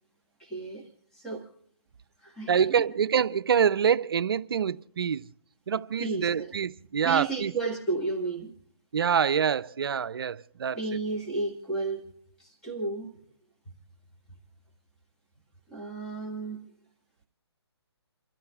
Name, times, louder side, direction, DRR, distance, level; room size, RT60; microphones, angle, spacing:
voice 1, 0.4-1.5 2.2-2.7 6.0-6.6 7.0-8.5 10.7-12.1 12.4-13.2 15.7-16.7, right 3 dB, 5° left, 1.6 m, -33 dB
voice 2, 2.5-5.2 5.7-7.5 8.9-10.8, right 7 dB, 55° right, 0.5 m, -26 dB
29.0 x 13.0 x 2.4 m
hypercardioid pair, 155°, 14 cm